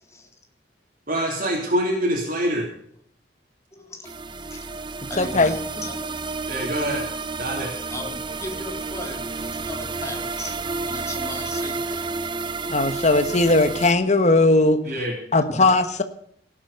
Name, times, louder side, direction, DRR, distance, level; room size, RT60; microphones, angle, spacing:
voice 1, 1.1-2.7 6.5-7.1 7.4-7.7 14.9-15.1, equal, 50° right, -1 dB, 3.4 m, -25 dB
voice 2, 3.7-4.1 4.4-4.7 5.1-6.2 7.9-10.6 10.9-12.1 15.5-15.6, left 1 dB, 15° left, 2 dB, 3.6 m, -36 dB
sound 1, 4.1-13.9, right 3 dB, 25° right, 0.7 m, -31 dB
voice 3, 5.2-5.5 12.7-14.8 15.3-16.0, left 2 dB, 40° left, 9 dB, 1.2 m, -18 dB
18.0 x 8.8 x 6.8 m, 0.64 s
head